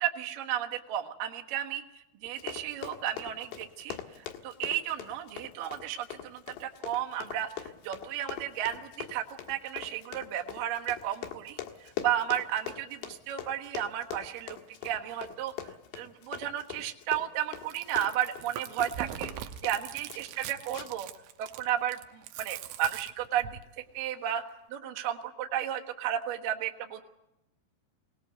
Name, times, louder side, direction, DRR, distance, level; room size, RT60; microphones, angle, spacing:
voice 1, 0.0-1.8 2.2-14.6 14.8-15.5 15.9-19.3 19.6-21.1 21.4-23.6 23.9-24.4 24.7-27.0, right 11 dB, 65° right, 2 dB, 2.4 m, -33 dB
Run, 2.2-19.8 20.1-20.4 20.7-21.1 21.5-21.6, left 10 dB, 70° left, 3.3 m, -42 dB
Chewing mastication, 17.6-23.6, right 11 dB, 85° right, 3.5 m, -42 dB
22.5 x 18.5 x 8.1 m, 0.88 s
omnidirectional pair, 5.5 m